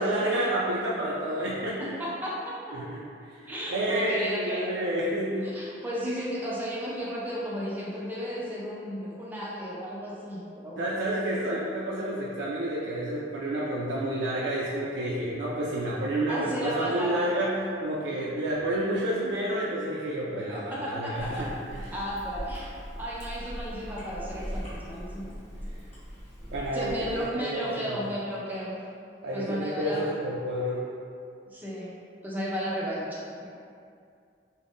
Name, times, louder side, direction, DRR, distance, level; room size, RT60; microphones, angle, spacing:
voice 1, 0.0-1.8 2.7-5.5 10.8-21.8 26.5-28.0 29.2-30.9, right 1 dB, 80° right, -6 dB, 0.4 m, -30 dB
voice 2, 1.8-2.6 3.5-4.7 5.5-10.8 11.4-11.5 16.3-17.3 20.5-21.4 21.9-22.7 23.0-25.3 26.7-28.7 29.3-30.1 31.5-31.9 32.2-33.5, equal, 10° right, -7 dB, 0.5 m, -34 dB
Chewing mastication, 21.1-27.3, equal, 35° left, 0.9 m, -40 dB
2.5 x 2.0 x 3.4 m, 2.4 s
head